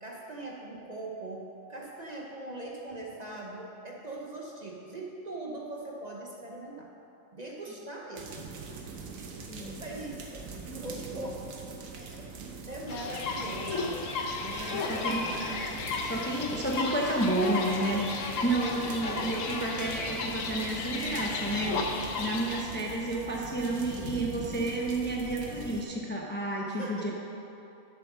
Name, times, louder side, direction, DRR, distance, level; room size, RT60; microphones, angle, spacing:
voice 1, 0.0-6.9 7.3-8.5 9.4-11.4 11.9-12.3 12.5-15.4 19.0-19.5 26.6-27.1, right 2 dB, 35° right, -2 dB, 1.0 m, -41 dB
sound 1, 8.2-25.8, right 4 dB, 90° right, 1.3 m, -43 dB
voice 2, 9.5-9.8 14.5-15.2 15.8-27.1, right 1 dB, 10° left, -2 dB, 0.7 m, -31 dB
sound 2, 12.9-22.6, left 4 dB, 75° left, 1.2 m, -34 dB
sound 3, 13.7-14.1 14.5-15.8, right 2 dB, 65° right, 1.4 m, -46 dB
7.8 x 7.6 x 6.1 m, 2.9 s
omnidirectional pair, 1.4 m